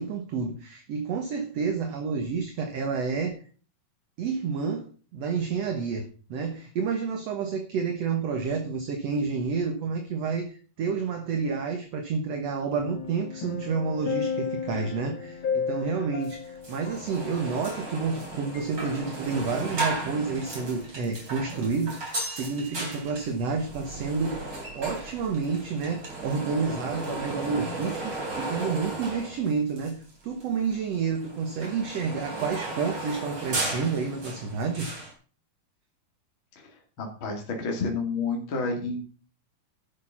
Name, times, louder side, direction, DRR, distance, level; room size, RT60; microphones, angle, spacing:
voice 1, 0.0-3.4 4.2-24.4 24.8-34.9, right 5 dB, 60° right, 2.2 m, -29 dB
sound 1, 12.8-18.2 18.5-18.7, left 6 dB, 60° left, 1.3 m, -34 dB
sound 2, 16.2-16.3 16.6-30.1 30.4-35.1, right 2 dB, 35° right, 4.2 m, -35 dB
voice 2, 37.0-39.1, left 3 dB, 40° left, 3.0 m, -30 dB
11.5 x 6.6 x 5.9 m
omnidirectional pair, 3.7 m